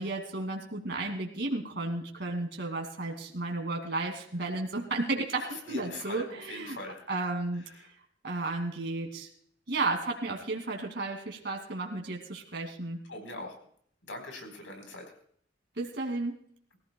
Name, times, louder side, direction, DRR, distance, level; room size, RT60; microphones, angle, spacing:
voice 1, 0.0-6.8 7.1-7.6 8.2-9.3 9.7-13.0 15.8-16.4, right 2 dB, 60° right, 2 dB, 2.4 m, -33 dB
voice 2, 5.3-7.1 7.7-7.9 13.1-13.6 14.0-15.1, left 2 dB, 80° left, 4 dB, 4.1 m, -42 dB
23.5 x 15.5 x 2.3 m, 0.64 s
head